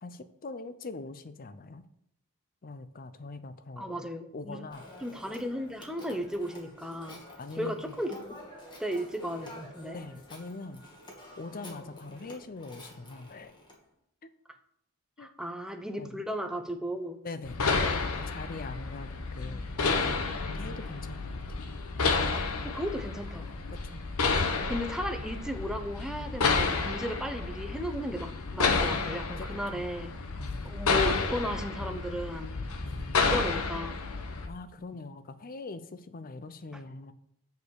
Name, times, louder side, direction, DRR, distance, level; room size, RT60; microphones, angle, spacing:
voice 1, 0.0-1.8 2.6-4.1 4.3-4.8 7.3-7.9 9.9-10.8 11.4-13.6 14.2-14.3 15.2-15.3 16.0-16.2 17.2-17.6 18.1-19.7 20.4-21.7 23.7-24.0 29.4-29.5 29.7-29.8 30.4-30.6 32.8-33.1 34.5-37.1, left 3 dB, 40° left, 11 dB, 0.6 m, -42 dB
voice 2, 3.8-4.6 5.0-7.2 7.6-8.2 8.8-10.0 15.2-17.2 22.5-23.5 24.6-30.1 30.6-32.5 33.2-34.0 36.7-36.8, equal, 5° right, 6 dB, 0.7 m, -35 dB
Telephone, 4.7-13.8, left 1 dB, 20° left, 1.5 m, -49 dB
sound 1, 17.4-34.5, left 4 dB, 80° left, 1.0 m, -31 dB
6.6 x 5.0 x 6.9 m, 0.74 s
head